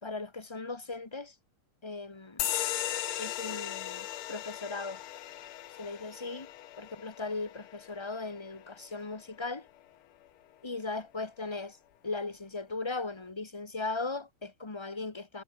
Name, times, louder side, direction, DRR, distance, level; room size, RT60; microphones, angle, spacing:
voice 1, 0.0-1.3 1.8-2.5 3.2-5.0 5.8-6.5 6.8-9.7 10.6-11.8 12.0-15.4, left 3 dB, 15° left, 1.2 m, -38 dB
sound 1, 2.4-9.5, left 13 dB, 80° left, 1.8 m, -37 dB
omnidirectional pair, 2.3 m